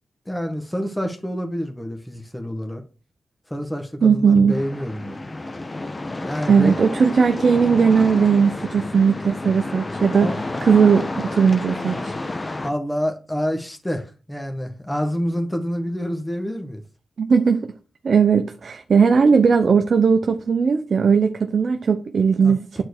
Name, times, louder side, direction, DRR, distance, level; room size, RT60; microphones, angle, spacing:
voice 1, 0.2-2.8 3.5-5.4 6.2-6.8 7.0-7.1 10.2-10.4 12.6-16.8 22.4-22.8, equal, 10° left, 1.6 m, -28 dB
voice 2, 4.0-4.6 6.5-10.3 10.7-12.2 17.2-17.7 18.0-22.7, right 6 dB, 60° right, 0.9 m, -17 dB
sound 1, 4.5-12.7, left 2 dB, 30° left, 1.2 m, -30 dB
9.5 x 4.4 x 6.6 m
cardioid pair, 60°, 0 cm